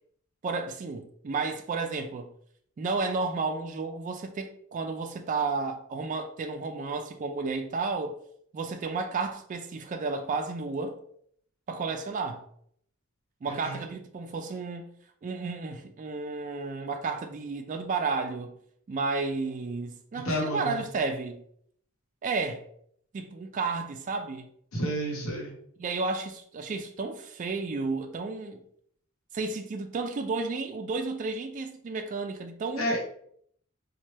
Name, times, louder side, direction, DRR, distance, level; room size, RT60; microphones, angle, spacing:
voice 1, 0.4-2.3 2.8-8.2 8.5-11.0 11.7-12.5 13.4-14.9 15.2-18.5 18.9-21.4 22.2-22.6 23.1-24.5 25.8-28.6 29.3-32.9, right 4 dB, 40° right, 0.3 m, -32 dB
voice 2, 13.5-13.8 20.2-20.8 24.7-25.6 32.8-33.1, equal, 85° left, 0.9 m, -30 dB
4.0 x 2.2 x 3.2 m
head